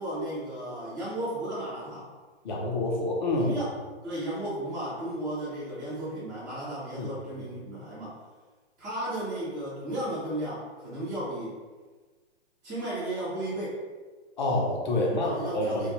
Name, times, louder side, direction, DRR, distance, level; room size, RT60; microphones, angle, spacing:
voice 1, 0.0-2.1 3.3-3.7 4.0-8.2 8.8-11.6 12.6-13.8 15.0-15.9, right 1 dB, 10° right, -13 dB, 0.4 m, -34 dB
voice 2, 2.4-3.5 6.9-7.1 7.4-7.5 14.4-15.9, left 2 dB, 45° left, -1 dB, 0.6 m, -27 dB
2.5 x 2.2 x 2.9 m, 1.3 s
hypercardioid pair, 170°, 33 cm